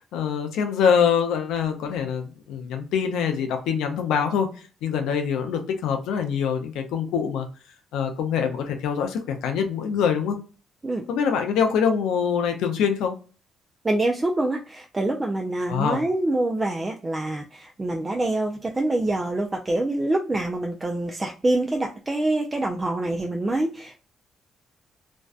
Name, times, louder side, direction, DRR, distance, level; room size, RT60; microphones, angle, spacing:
voice 1, 0.0-4.5 4.8-7.5 7.9-10.4 11.1-13.1 15.7-16.0, left 7 dB, 90° left, 5 dB, 0.4 m, -24 dB
voice 2, 13.8-24.0, right 2 dB, 25° right, 2 dB, 0.3 m, -25 dB
2.5 x 2.1 x 2.3 m, 0.36 s
cardioid pair, 90°, 0 cm